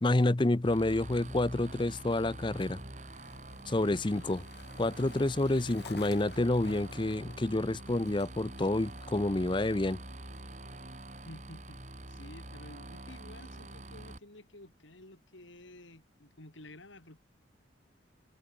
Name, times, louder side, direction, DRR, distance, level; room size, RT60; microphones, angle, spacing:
voice 1, 0.0-2.8 3.7-4.4 4.8-10.0, left 2 dB, 25° left, 0.6 m, -29 dB
sound 1, 0.6-14.2, right 1 dB, 35° right, 4.0 m, -46 dB
Skateboard, 1.0-13.7, left 3 dB, 55° left, 5.2 m, -56 dB
voice 2, 3.7-4.5 11.2-17.2, left 1 dB, 75° left, 4.0 m, -52 dB
head